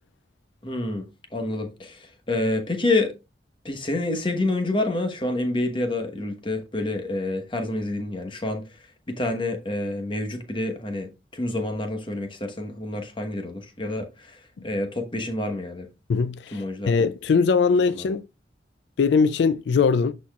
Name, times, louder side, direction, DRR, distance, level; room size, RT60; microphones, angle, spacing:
voice 1, 0.6-3.1 3.6-15.9 16.5-16.9 17.9-18.1, left 2 dB, 30° left, 1.1 m, -28 dB
voice 2, 16.1-18.2 19.0-20.1, left 5 dB, 80° left, 0.3 m, -21 dB
12.0 x 4.2 x 2.4 m
head